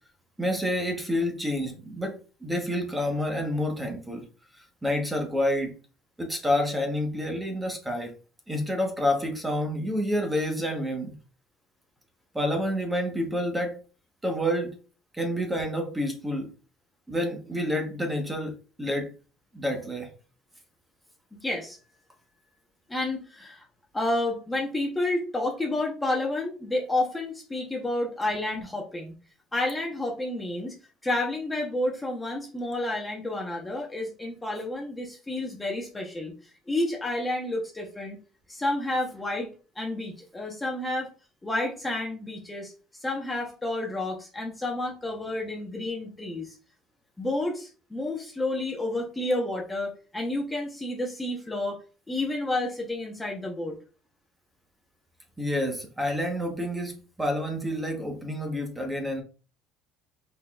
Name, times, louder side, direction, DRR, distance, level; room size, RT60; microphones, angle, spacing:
voice 1, 0.4-4.2 4.8-5.8 6.2-8.1 8.5-11.2 12.3-13.8 14.2-14.8 15.1-16.5 17.1-19.1 19.5-20.1 55.4-59.2, left 1 dB, 10° right, 1.3 m, -28 dB
voice 2, 21.4-21.8 22.9-23.6 23.9-29.1 29.5-30.7 31.0-36.3 36.7-38.2 38.5-39.5 39.8-41.1 41.4-42.7 43.0-46.5 47.2-51.8 52.1-53.8, left 2 dB, 10° left, 1.1 m, -30 dB
5.3 x 4.0 x 2.5 m
cardioid pair, 130°, 0 cm